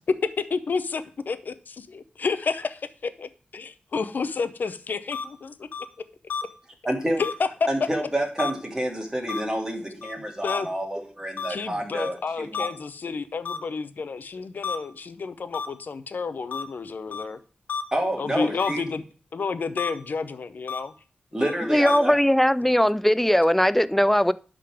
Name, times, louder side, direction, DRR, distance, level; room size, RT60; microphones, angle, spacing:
voice 1, 0.5-3.3 3.5-5.7 7.2-7.5 10.2-10.7 11.5-17.4 18.2-19.0 19.3-20.9 22.6-22.7, left 4 dB, 70° left, 0.7 m, -30 dB
sound 1, 5.1-5.2 5.7-5.9 6.3-6.4 7.2-7.3 8.4-8.5 9.3-9.4 10.0-10.1 10.5-10.6 11.4-11.5 12.0-12.1 12.5-12.7 13.5-13.6 14.6-14.8 15.5-15.7 16.5-16.6 17.1-17.2 17.7-17.8 18.6-18.7 19.8-19.9 20.7-20.8 21.4-21.5 21.9-22.0, left 6 dB, 90° left, 1.0 m, -30 dB
voice 2, 6.8-7.2 7.7-12.7 17.9-18.8 21.3-22.1, right 1 dB, 20° right, 2.3 m, -28 dB
voice 3, 21.7-24.3, equal, 5° left, 0.3 m, -19 dB
11.5 x 3.8 x 4.9 m
wide cardioid pair, 75°, 3 cm